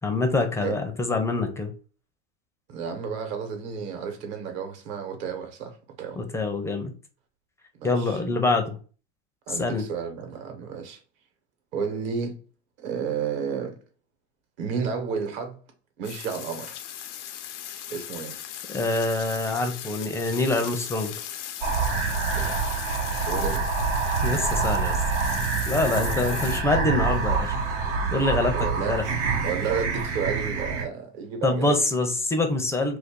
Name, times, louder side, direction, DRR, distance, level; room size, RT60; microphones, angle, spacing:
voice 1, 0.0-1.7 6.2-6.9 7.8-8.8 9.5-9.8 18.7-21.1 24.2-25.0 25.7-27.6 28.1-29.0 31.4-33.0, left 2 dB, 10° left, 0.4 m, -25 dB
voice 2, 2.7-6.2 7.7-8.2 9.5-11.0 11.7-12.4 12.8-13.8 14.6-15.6 16.0-16.8 17.9-18.4 22.3-22.6 23.1-23.7 25.9-26.5 28.5-29.0 29.4-31.7, right 6 dB, 60° right, 1.1 m, -32 dB
sound 1, 16.0-26.6, left 10 dB, 85° left, 0.5 m, -38 dB
sound 2, 21.6-30.8, right 4 dB, 85° right, 0.9 m, -26 dB
2.6 x 2.2 x 3.5 m
hypercardioid pair, 110°, 35 cm